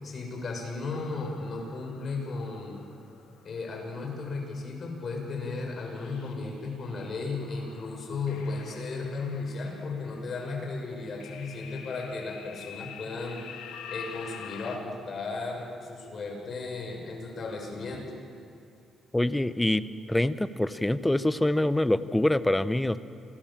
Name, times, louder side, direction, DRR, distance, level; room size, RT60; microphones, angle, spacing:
voice 1, 0.0-2.8 3.4-13.4 13.9-18.1, left 3 dB, 50° left, 1 dB, 6.8 m, -35 dB
sound 1, 0.9-4.1 4.9-5.1 5.5-6.8 7.3-14.8, left 8 dB, 90° left, 2.0 m, -47 dB
voice 2, 19.1-19.8 20.1-23.0, left 1 dB, 10° left, 14 dB, 0.9 m, -25 dB
28.0 x 20.0 x 7.5 m, 2.5 s
cardioid pair, 90°, 0 cm